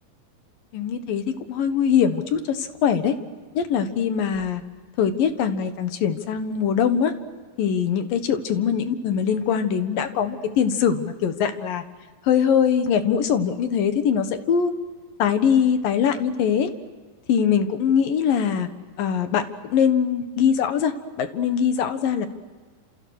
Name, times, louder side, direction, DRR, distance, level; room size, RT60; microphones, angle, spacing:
voice 1, 0.7-3.1 3.5-4.6 5.0-7.1 7.6-11.8 12.2-14.7 15.2-16.7 17.3-18.7 19.0-20.9 21.2-22.3, left 7 dB, 70° left, 9 dB, 3.1 m, -22 dB
30.0 x 28.0 x 6.5 m, 1.4 s
omnidirectional pair, 4.2 m